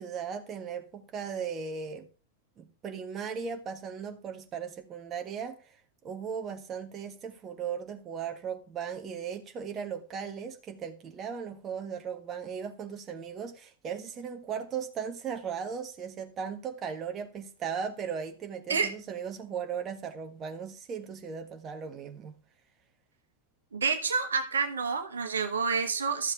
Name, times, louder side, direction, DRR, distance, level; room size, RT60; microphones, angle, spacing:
voice 1, 0.0-2.1 2.6-5.8 6.0-22.3, right 7 dB, 30° right, 1.6 m, -37 dB
voice 2, 23.7-26.3, right 5 dB, 70° right, 1.5 m, -28 dB
13.0 x 7.5 x 3.5 m
figure-of-eight pair, 90°, 0 cm